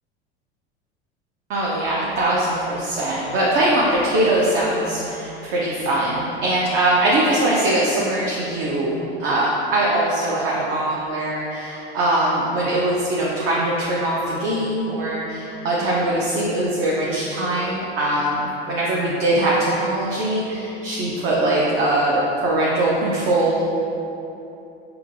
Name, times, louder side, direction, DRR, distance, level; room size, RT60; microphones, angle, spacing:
voice 1, 1.5-23.6, right 1 dB, 40° right, -5 dB, 0.7 m, -21 dB
5.6 x 2.8 x 2.6 m, 2.9 s
figure-of-eight pair, 75°, 33 cm